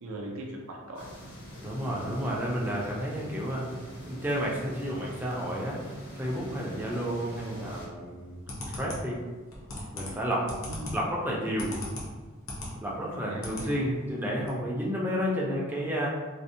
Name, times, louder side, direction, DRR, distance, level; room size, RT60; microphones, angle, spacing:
voice 1, 0.0-1.1 4.0-4.1 7.4-7.8 10.7-11.0 13.1-13.9, right 1 dB, 75° right, 0 dB, 0.4 m, -40 dB
sound 1, 0.9-7.9, equal, 80° left, 1.1 m, -45 dB
voice 2, 1.6-3.7 4.0-8.4 8.7-9.2 9.9-10.5 10.9-11.8 12.8-16.1, equal, 10° right, -4 dB, 0.3 m, -31 dB
sound 2, 8.1-12.8 13.1-13.7 14.0-14.1 14.4-14.5, left 1 dB, 65° left, 0.6 m, -38 dB
2.5 x 2.0 x 2.6 m, 1.3 s
head